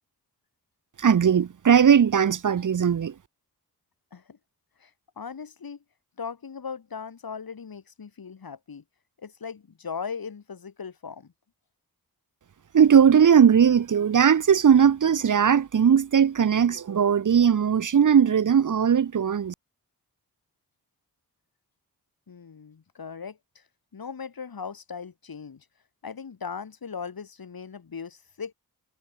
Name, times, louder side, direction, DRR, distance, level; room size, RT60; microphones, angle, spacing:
voice 1, 1.0-3.1 12.7-19.5, right 7 dB, 55° right, 0.8 m, -19 dB
voice 2, 5.2-5.8 6.2-8.8 9.2-11.3 22.3-23.6 23.9-25.7 26.0-28.5, left 6 dB, 70° left, 6.9 m, -38 dB
wide cardioid pair, 110°, 37 cm